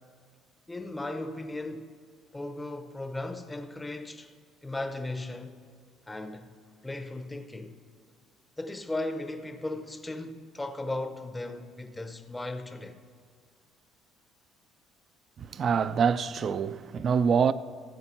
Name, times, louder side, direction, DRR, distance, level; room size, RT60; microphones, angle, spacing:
voice 1, 0.7-1.9 2.3-4.3 4.6-5.6 6.1-6.5 6.8-7.8 8.6-12.9, left 2 dB, 10° left, 0.6 m, -36 dB
voice 2, 15.4-17.5, right 6 dB, 45° right, 0.4 m, -25 dB
14.0 x 7.8 x 4.4 m
cardioid pair, 105°, 0 cm